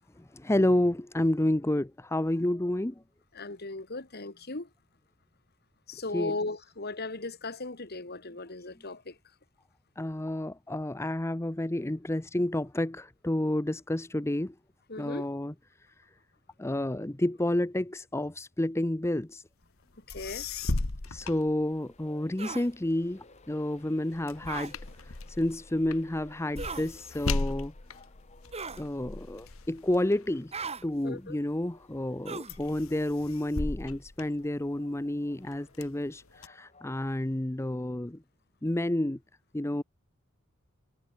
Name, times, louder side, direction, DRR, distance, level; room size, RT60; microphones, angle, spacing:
voice 1, 0.3-2.9 6.1-6.4 10.0-14.5 15.0-15.5 16.6-19.4 21.1-24.7 25.4-27.7 28.8-30.5 30.8-38.2 38.6-39.2 39.5-39.8, left 1 dB, 15° left, 0.7 m, -30 dB
voice 2, 3.3-4.7 5.9-9.2 14.9-15.3 20.1-20.5 31.0-31.4, left 2 dB, 50° left, 2.4 m, -37 dB
sound 1, 19.8-19.9 20.1-22.2 22.7-31.3 31.8-32.2 32.5-35.0 35.5-36.5, left 2 dB, 80° left, 1.5 m, -37 dB
Train, 21.1-37.8, left 3 dB, 35° left, 6.1 m, -60 dB
sound 2, 22.4-22.7 24.5-24.7 26.6-26.9 28.5-28.9 30.5-30.8 32.2-32.6, right 4 dB, 30° right, 3.2 m, -37 dB
head